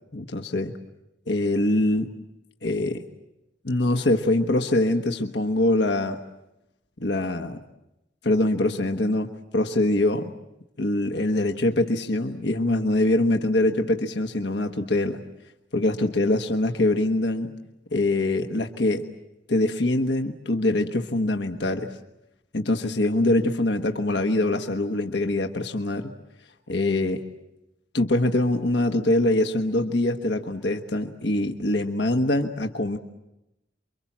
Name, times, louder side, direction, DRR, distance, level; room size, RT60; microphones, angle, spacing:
voice 1, 0.1-0.7 1.3-2.1 2.6-3.0 3.6-6.2 7.0-7.6 8.2-9.3 9.5-10.3 10.8-15.2 15.7-17.5 17.9-19.0 19.5-21.9 22.5-26.1 26.7-27.2 27.9-33.0, left 1 dB, 75° left, 4 dB, 1.3 m, -23 dB
29.0 x 24.0 x 7.4 m, 0.91 s
head